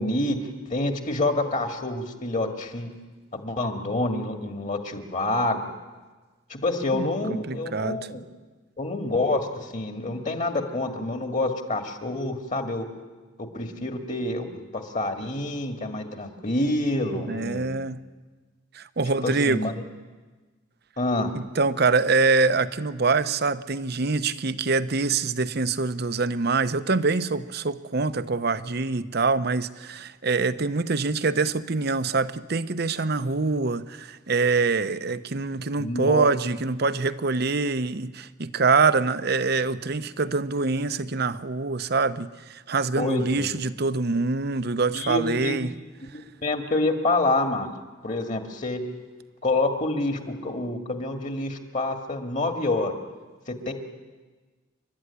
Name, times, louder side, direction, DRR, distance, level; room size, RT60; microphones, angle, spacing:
voice 1, 0.0-2.9 3.3-5.6 6.5-8.2 8.8-12.9 13.4-17.7 19.2-19.7 21.0-21.3 35.8-36.2 43.0-43.6 44.9-45.6 46.1-47.7 48.0-48.8 49.4-52.9 53.5-53.7, left 2 dB, 40° left, 5 dB, 2.1 m, -27 dB
voice 2, 6.9-8.0 17.3-18.1 18.7-19.6 21.3-45.7, right 4 dB, 50° right, 13 dB, 0.8 m, -25 dB
29.0 x 12.5 x 9.9 m, 1.3 s
head